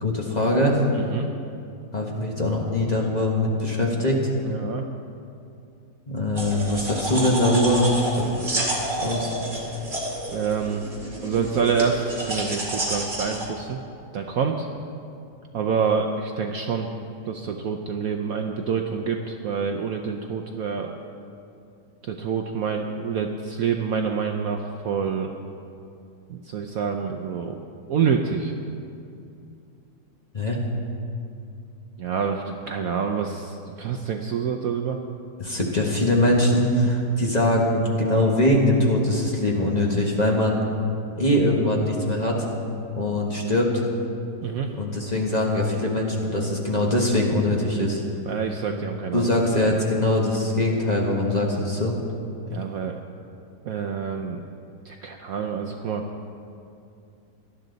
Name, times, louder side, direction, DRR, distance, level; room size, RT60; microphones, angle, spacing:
voice 1, 0.0-0.8 1.9-4.3 6.1-8.3 9.0-9.3 30.3-30.6 35.4-40.6 41.2-42.5 42.9-43.8 44.7-48.0 48.7-48.8 49.1-51.9, left 1 dB, 25° left, -2 dB, 1.3 m, -22 dB
voice 2, 0.9-1.3 4.4-4.8 10.3-10.9 11.2-13.8 14.1-14.7 15.5-16.9 17.3-20.9 22.0-25.3 26.3-27.6 27.9-28.5 32.0-35.0 44.4-44.7 48.2-49.3 52.5-53.0 53.7-54.4 54.8-56.0, right 6 dB, 65° right, 3 dB, 1.0 m, -27 dB
sound 1, 6.4-13.5, right 1 dB, 25° right, 2.3 m, -30 dB
18.5 x 12.0 x 4.0 m, 2.5 s
omnidirectional pair, 1.9 m